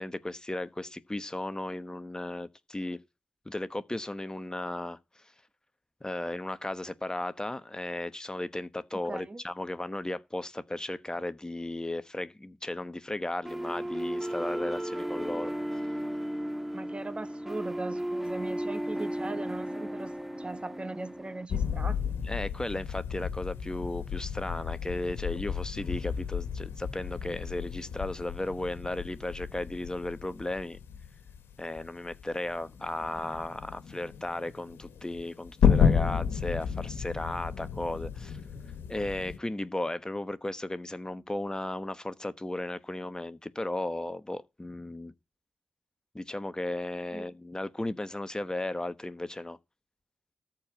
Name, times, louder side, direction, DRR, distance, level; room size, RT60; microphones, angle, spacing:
voice 1, 0.0-3.0 3.5-5.3 6.0-15.5 22.2-30.8 31.6-38.4 38.9-45.1 46.1-49.6, left 1 dB, 20° left, 1.1 m, -35 dB
voice 2, 8.9-9.4 16.7-22.1 47.1-47.3, right 2 dB, 30° right, 1.5 m, -39 dB
sound 1, 13.4-21.4, right 1 dB, 5° right, 1.6 m, -35 dB
sound 2, 21.5-39.4, left 7 dB, 75° left, 1.7 m, -32 dB
13.5 x 4.6 x 8.9 m
supercardioid pair, 40°, 4 cm